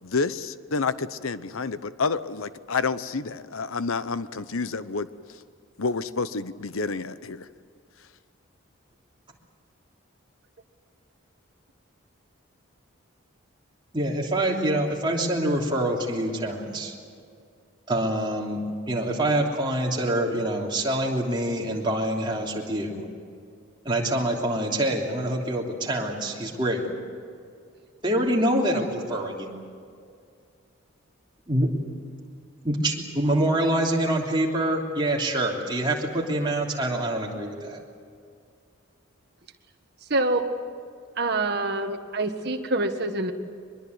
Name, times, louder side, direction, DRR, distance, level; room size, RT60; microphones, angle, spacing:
voice 1, 0.0-5.1 5.8-7.5, left 4 dB, 80° left, 14 dB, 0.8 m, -29 dB
voice 2, 13.9-16.9 17.9-18.6 18.9-23.0 23.8-26.9 28.0-29.5 31.5-31.7 32.6-37.8, right 1 dB, 25° right, -1 dB, 3.1 m, -25 dB
voice 3, 40.1-40.4 41.2-43.3, right 2 dB, 50° right, 5 dB, 1.6 m, -26 dB
23.5 x 22.0 x 8.1 m, 2.3 s
head